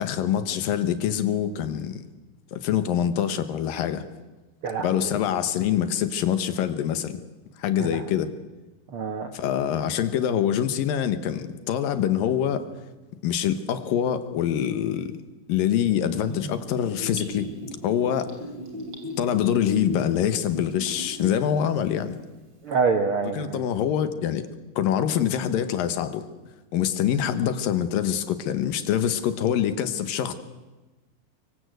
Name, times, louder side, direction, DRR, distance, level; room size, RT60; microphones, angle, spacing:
voice 1, 0.0-2.1 2.5-4.1 4.8-7.2 7.6-8.3 9.3-12.6 13.2-15.1 15.5-17.5 17.8-18.3 19.2-22.2 23.3-24.5 24.8-26.3 26.7-30.3, left 9 dB, 75° left, 10 dB, 2.9 m, -25 dB
voice 2, 4.6-5.1 7.9-8.0 8.9-9.3 22.6-23.6, right 4 dB, 65° right, 6 dB, 1.3 m, -26 dB
Gurgling / Bathtub (filling or washing), 16.3-21.4 21.8-21.9, left 1 dB, 30° right, 4.9 m, -37 dB
24.5 x 23.5 x 8.0 m, 1.2 s
omnidirectional pair, 4.2 m